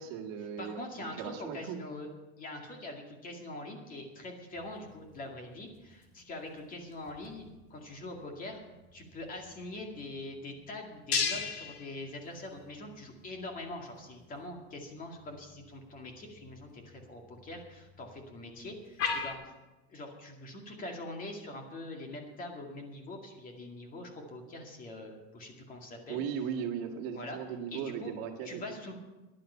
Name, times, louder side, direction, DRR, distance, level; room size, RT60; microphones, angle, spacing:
voice 1, 0.0-0.9 1.1-1.8 26.1-28.6, right 8 dB, 55° right, 3 dB, 1.8 m, -37 dB
voice 2, 0.6-2.1 2.4-8.6 8.9-19.4 19.9-26.2 27.1-27.4 27.7-28.1 28.4-29.0, left 2 dB, 25° left, 2 dB, 2.2 m, -43 dB
sound 1, 4.5-19.3, left 5 dB, 45° left, 2.1 m, -41 dB
14.5 x 11.0 x 5.6 m, 1.1 s
supercardioid pair, 155°, 32 cm